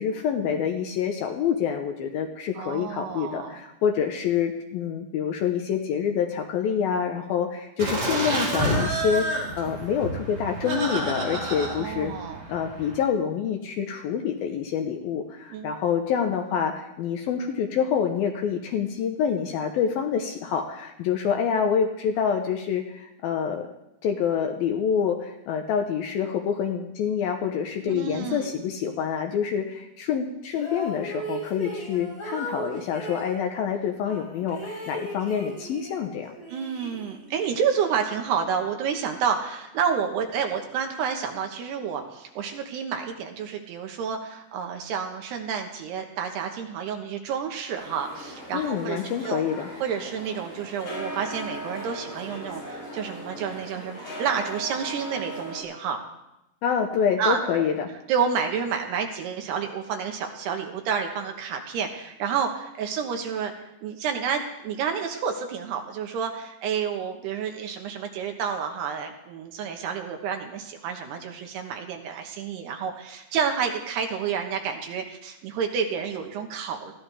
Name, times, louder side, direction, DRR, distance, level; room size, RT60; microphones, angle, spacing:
voice 1, 0.0-12.1 12.5-23.7 24.0-36.3 48.5-49.7 56.6-57.9, left 7 dB, 75° left, 4 dB, 2.4 m, -27 dB
voice 2, 2.6-3.6 11.7-12.5 15.5-15.7 27.8-28.5 36.5-49.4 49.8-56.0 57.2-57.7 58.1-63.5 63.8-76.9, right 7 dB, 75° right, 4 dB, 3.2 m, -29 dB
Laughter, 7.8-13.0, right 1 dB, 50° right, 6.2 m, -29 dB
sound 1, 30.5-33.4 34.1-36.0 36.4-37.4, equal, 20° left, 5.2 m, -36 dB
sound 2, 47.7-55.6, right 1 dB, 45° left, 9.1 m, -38 dB
20.0 x 15.0 x 3.5 m, 0.88 s
omnidirectional pair, 5.0 m